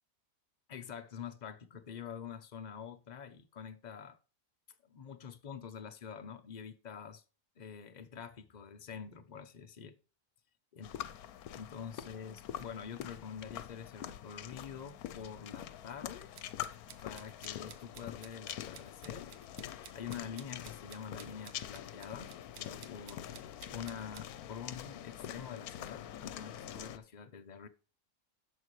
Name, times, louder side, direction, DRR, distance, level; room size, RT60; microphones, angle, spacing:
voice 1, 0.7-4.2 4.8-7.2 7.6-10.0 10.7-10.9 11.5-16.3 17.0-19.4 19.6-22.3 22.6-23.3 23.7-27.7, left 7 dB, 45° left, 0.6 m, -46 dB
sound 1, 10.8-27.0, left 11 dB, 80° left, 1.1 m, -45 dB
sound 2, 16.3-24.3, right 9 dB, 60° right, 0.8 m, -55 dB
11.0 x 6.9 x 3.2 m
omnidirectional pair, 1.6 m